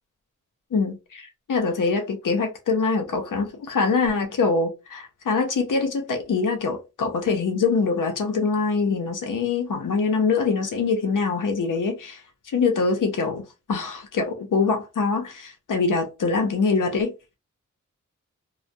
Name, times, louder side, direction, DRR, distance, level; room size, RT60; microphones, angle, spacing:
voice 1, 0.7-12.2 12.5-13.4 13.7-17.1, left 4 dB, 80° left, 0.6 m, -24 dB
2.2 x 2.1 x 2.6 m
wide cardioid pair, 70°, 31 cm